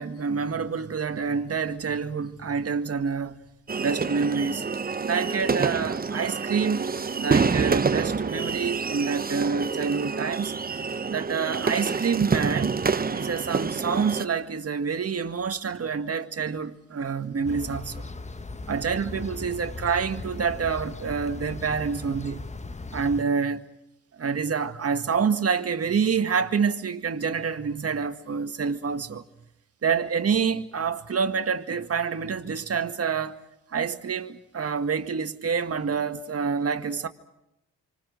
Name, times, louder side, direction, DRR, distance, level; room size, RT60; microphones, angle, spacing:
voice 1, 0.0-3.4 3.8-4.7 5.0-6.9 7.2-10.5 11.1-12.8 13.1-18.1 18.7-22.5 22.9-23.6 24.2-29.2 29.8-33.4 33.7-37.1, right 6 dB, 45° right, 1.9 m, -27 dB
sound 1, 3.7-14.2, right 5 dB, 25° right, 1.0 m, -27 dB
sound 2, 17.4-23.2, left 3 dB, 20° left, 1.0 m, -38 dB
28.0 x 25.5 x 6.5 m
hypercardioid pair, 50°, 34 cm